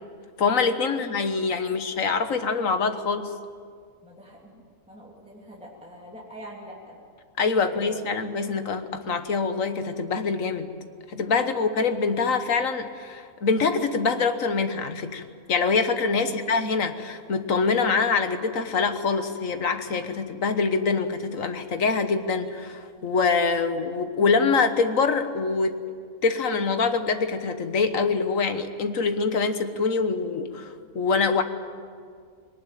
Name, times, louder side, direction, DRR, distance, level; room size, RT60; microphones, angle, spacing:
voice 1, 0.4-3.3 7.4-10.7 11.1-15.2 15.5-25.8 26.2-31.4, left 4 dB, 65° left, 9 dB, 1.6 m, -24 dB
voice 2, 1.6-2.1 4.0-7.0 7.6-8.2 11.3-11.4 16.2-16.5, right 1 dB, 5° right, -4 dB, 2.8 m, -44 dB
20.5 x 19.0 x 9.2 m, 2.1 s
omnidirectional pair, 1.5 m